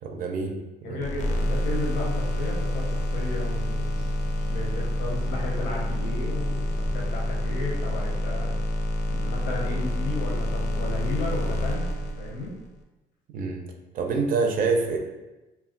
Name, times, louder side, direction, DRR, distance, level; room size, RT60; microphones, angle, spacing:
voice 1, 0.0-1.0 13.3-13.6 13.9-15.0, right 4 dB, 55° right, 2 dB, 0.4 m, -26 dB
voice 2, 0.8-4.0 4.5-8.6 9.0-11.9 12.2-12.6, left 2 dB, 90° left, -1 dB, 0.7 m, -34 dB
sound 1, 1.0-12.7, left 1 dB, 45° left, 0.4 m, -28 dB
sound 2, 1.3-8.2, equal, 5° right, 0.5 m, -44 dB
2.3 x 2.1 x 3.7 m, 1.1 s
cardioid pair, 110°, 17 cm